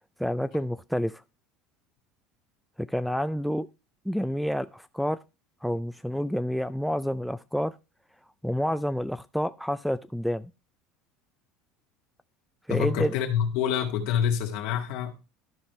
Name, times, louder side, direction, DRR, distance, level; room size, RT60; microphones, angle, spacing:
voice 1, 0.2-1.2 2.8-3.7 4.1-5.2 5.6-7.7 8.4-10.5 12.7-13.2, equal, ahead, 0.3 m, -28 dB
voice 2, 12.7-15.2, left 8 dB, 70° left, 1.9 m, -27 dB
12.5 x 5.1 x 3.1 m
supercardioid pair, 135°, 0 cm